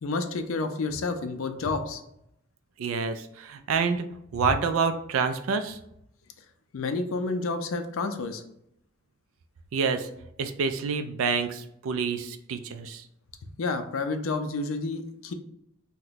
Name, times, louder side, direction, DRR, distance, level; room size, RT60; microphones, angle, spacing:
voice 1, 0.0-2.0 6.7-8.4 13.6-15.3, left 3 dB, 75° left, 8 dB, 0.4 m, -30 dB
voice 2, 2.8-4.0 4.3-5.8 9.7-10.1 10.4-13.0, right 5 dB, 80° right, 9 dB, 0.4 m, -27 dB
2.9 x 2.1 x 3.9 m, 0.77 s
head